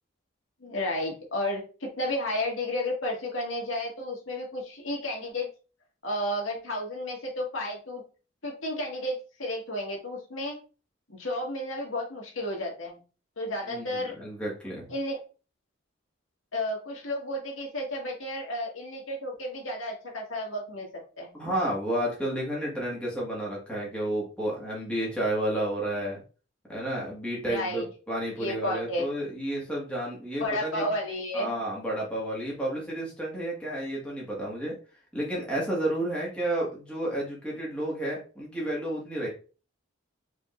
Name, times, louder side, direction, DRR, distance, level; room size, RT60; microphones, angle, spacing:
voice 1, 0.6-5.5 6.0-8.0 8.4-10.6 11.1-13.0 13.4-14.1 14.9-15.2 16.5-21.3 27.5-27.9 28.4-29.1 30.4-31.5, left 1 dB, 80° left, -1 dB, 1.7 m, -32 dB
voice 2, 13.7-14.9 21.3-26.2 26.7-30.8 31.3-34.8 35.1-39.3, right 1 dB, 5° left, -4 dB, 1.7 m, -31 dB
4.9 x 3.7 x 2.5 m, 0.35 s
head